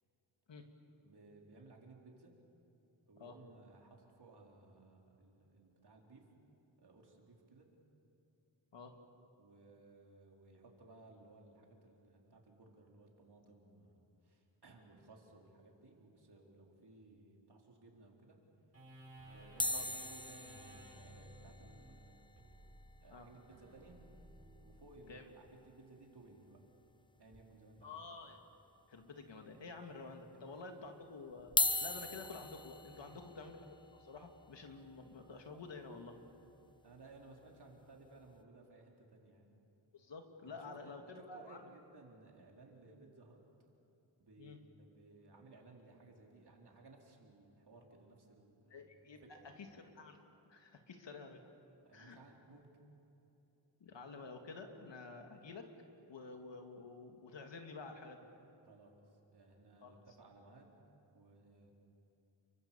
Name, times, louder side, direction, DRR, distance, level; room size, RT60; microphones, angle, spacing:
voice 1, 1.0-2.3 3.1-6.3 6.8-7.7 9.4-18.4 19.3-22.3 23.0-24.0 24.6-26.6 27.2-28.0 30.5-30.6 32.9-33.2 36.8-39.5 40.4-43.4 44.2-48.8 49.2-49.6 51.8-52.7 58.6-60.8 61.1-61.7, right 2 dB, 55° right, 0 dB, 4.2 m, -60 dB
sound 1, 18.7-25.5, right 1 dB, 30° right, 7.3 m, -57 dB
sound 2, 19.6-23.9 24.2-24.3 24.5-24.7 25.1-25.2 26.5-26.6 27.3-27.9 28.4-28.5 29.3-29.4 31.4-37.5 38.1-38.3, left 2 dB, 10° left, 0.8 m, -41 dB
voice 2, 27.8-28.4 28.9-31.6 31.8-33.7 34.0-36.2 39.9-41.6 44.4-44.6 48.7-50.2 50.5-51.4 51.9-52.2 53.8-55.7 56.1-58.3 59.8-60.0, left 3 dB, 65° left, 4 dB, 2.5 m, -50 dB
30.0 x 24.0 x 7.2 m, 2.9 s
wide cardioid pair, 130°, 46 cm